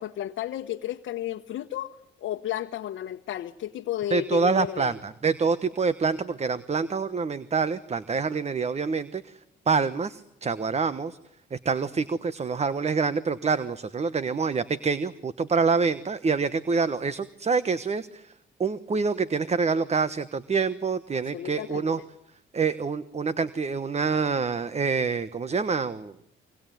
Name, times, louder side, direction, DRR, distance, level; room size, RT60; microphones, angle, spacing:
voice 1, 0.0-4.9 21.3-21.8, left 12 dB, 75° left, 1.2 m, -33 dB
voice 2, 4.1-9.4 9.7-11.2 11.5-18.3 18.6-22.0 22.5-26.1, right 5 dB, 35° right, 1.2 m, -26 dB
25.5 x 25.5 x 9.2 m
cardioid pair, 90°, 20 cm